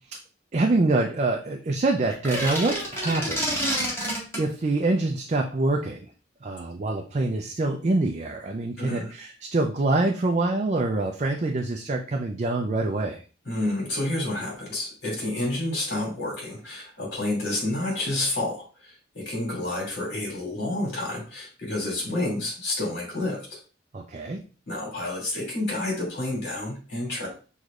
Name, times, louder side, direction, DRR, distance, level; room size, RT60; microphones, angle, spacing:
voice 1, 0.5-4.1 4.4-6.1 6.4-13.2 23.9-24.4, right 2 dB, 40° right, 2 dB, 0.4 m, -25 dB
sound 1, 2.1-4.5, equal, 15° left, 1.7 m, -28 dB
voice 2, 8.8-9.1 13.4-23.6 24.7-27.3, left 1 dB, 60° left, -3 dB, 2.5 m, -29 dB
6.3 x 3.1 x 2.4 m, 0.37 s
head